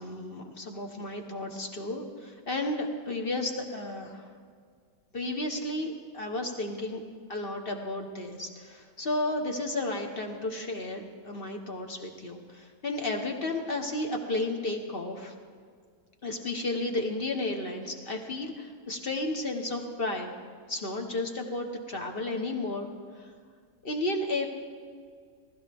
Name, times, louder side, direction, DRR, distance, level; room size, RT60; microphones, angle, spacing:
voice 1, 0.0-4.3 5.1-7.0 7.3-15.3 16.2-20.3 20.7-22.9 23.2-23.3 23.8-24.5, left 2 dB, 40° left, 3 dB, 0.9 m, -33 dB
19.0 x 13.0 x 3.5 m, 2.1 s
omnidirectional pair, 2.2 m